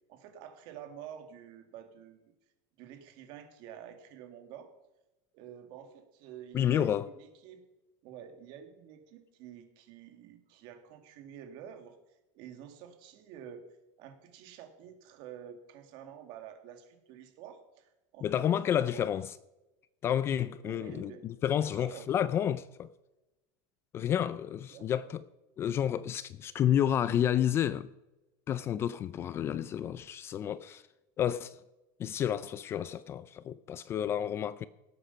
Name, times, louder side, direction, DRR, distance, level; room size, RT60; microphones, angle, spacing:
voice 1, 0.1-2.3 2.8-4.7 5.3-7.6 8.0-12.0 12.3-13.7 14.0-18.4 18.7-19.1 20.6-21.3 21.6-22.1 24.7-25.1, right 9 dB, 50° right, 2.0 m, -49 dB
voice 2, 6.5-7.1 18.2-19.3 20.0-22.9 23.9-25.2 25.6-27.9 28.5-30.8 31.2-31.6 32.0-34.7, left 10 dB, 25° left, 0.3 m, -30 dB
18.0 x 8.2 x 5.5 m
cardioid pair, 170°, 10 cm